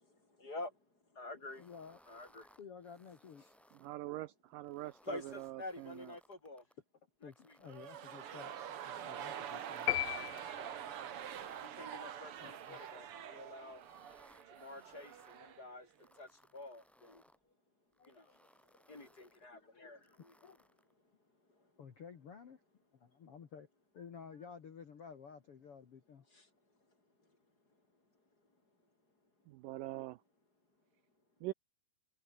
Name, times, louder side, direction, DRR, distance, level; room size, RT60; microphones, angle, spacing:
voice 1, 0.2-1.6 2.1-2.6 5.0-6.6 7.2-7.6 10.6-10.9 11.2-13.8 14.5-17.2 18.0-18.4 18.6-20.3 21.5-21.7 26.3-26.5 27.2-27.4, left 2 dB, 25° left, 5.5 m, -49 dB
sound 1, 1.4-3.9 4.5-6.7 7.2-8.3 8.8-10.5 11.0-11.7 12.3-13.2 13.7-15.4 15.9-17.4 17.9-19.5 20.0-20.9, equal, ahead, 4.3 m, -67 dB
voice 2, 1.6-2.0 2.6-3.4 7.2-9.9 12.4-12.8 18.0-18.4 19.5-19.9 20.4-20.6 21.8-22.6 23.0-23.7 23.9-26.2, left 6 dB, 45° left, 2.4 m, -53 dB
voice 3, 3.7-6.1 29.5-30.2 31.4-31.5, right 17 dB, 80° right, 2.1 m, -44 dB
sound 2, 7.6-15.7 16.0-16.1, right 9 dB, 55° right, 1.7 m, -46 dB
sound 3, 9.9-11.1, left 19 dB, 80° left, 2.2 m, -36 dB
omnidirectional pair, 4.3 m